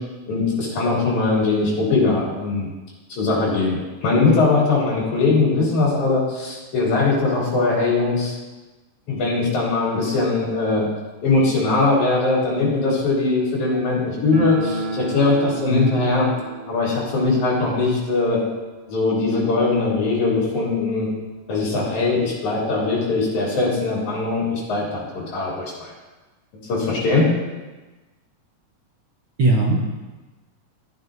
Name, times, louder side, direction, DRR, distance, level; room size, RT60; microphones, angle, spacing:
voice 1, 0.3-2.7 3.1-8.3 9.1-10.9 11.2-16.3 16.7-18.4 18.9-21.1 21.5-25.9 26.7-27.3, left 3 dB, 65° left, -5 dB, 4.5 m, -21 dB
sound 1, 14.3-21.0 21.3-21.4 21.6-21.7 22.5-22.6 22.9-24.1, right 2 dB, 45° right, 1.6 m, -33 dB
voice 2, 29.4-29.9, right 2 dB, 65° right, -3 dB, 1.3 m, -19 dB
13.5 x 8.8 x 2.7 m, 1.2 s
omnidirectional pair, 3.7 m